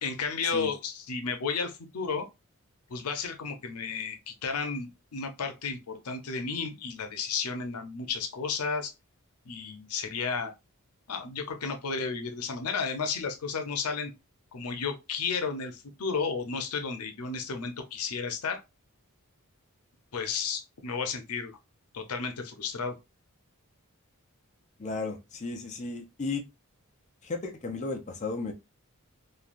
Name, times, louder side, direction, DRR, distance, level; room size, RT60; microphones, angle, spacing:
voice 1, 0.0-2.3 2.9-8.9 9.5-10.5 11.1-14.1 14.5-18.6 20.1-21.6 21.9-23.0, left 5 dB, 85° left, 0.6 m, -33 dB
voice 2, 24.8-26.4 27.2-28.5, left 3 dB, 35° left, 0.5 m, -34 dB
3.2 x 2.3 x 2.5 m
head